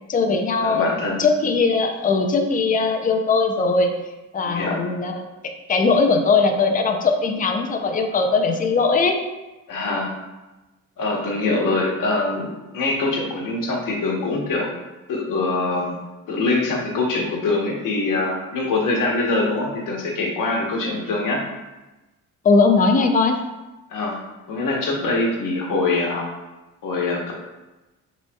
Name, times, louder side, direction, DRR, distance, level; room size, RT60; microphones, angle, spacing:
voice 1, 0.1-0.9 1.2-3.9 4.3-9.2 22.4-23.4, left 4 dB, 25° left, 4 dB, 0.5 m, -19 dB
voice 2, 0.6-1.2 4.4-4.8 9.7-10.1 11.0-14.7 15.1-16.0 16.3-21.4 23.9-24.2 24.5-26.3 26.8-27.3, left 2 dB, 65° left, -1 dB, 1.2 m, -23 dB
6.5 x 3.0 x 2.3 m, 1.1 s
cardioid pair, 110°, 35 cm